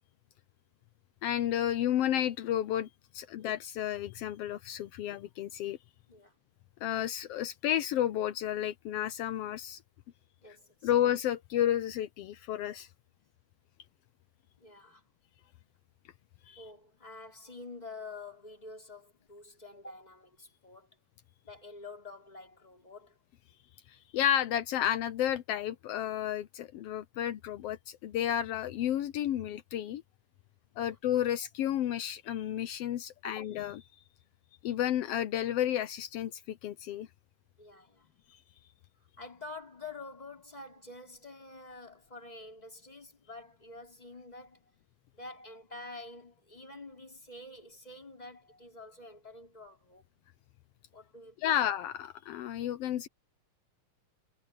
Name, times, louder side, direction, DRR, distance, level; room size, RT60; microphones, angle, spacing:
voice 1, 1.2-5.8 6.8-9.8 10.8-12.9 16.5-16.6 23.9-30.0 30.8-33.8 34.6-37.1 38.3-38.4 51.4-53.1, left 11 dB, 80° left, 1.3 m, -32 dB
voice 2, 10.4-10.9 14.6-15.0 16.6-20.9 21.4-23.2 30.8-31.0 33.2-33.4 37.6-38.1 39.2-44.6 45.1-50.0 50.9-51.4, left 2 dB, 10° left, 3.8 m, -48 dB
omnidirectional pair, 3.6 m